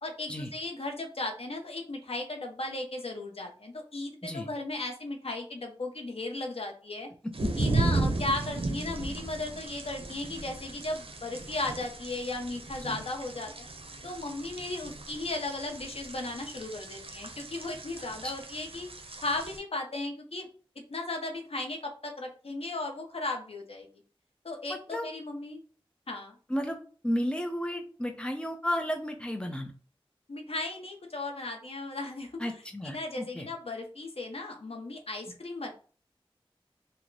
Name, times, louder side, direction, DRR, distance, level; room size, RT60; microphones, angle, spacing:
voice 1, 0.0-7.1 7.6-13.7 14.0-18.9 19.2-20.5 20.9-23.9 24.4-25.6 26.1-26.4 30.3-32.5 32.8-35.7, left 2 dB, 85° left, 3 dB, 0.7 m, -36 dB
sound 1, 7.3-19.6, right 2 dB, 75° right, 0.6 m, -35 dB
voice 2, 24.7-25.1 26.5-29.7 32.4-33.5, equal, 10° left, 4 dB, 0.7 m, -33 dB
3.0 x 2.1 x 3.8 m, 0.41 s
wide cardioid pair, 40°, 10 cm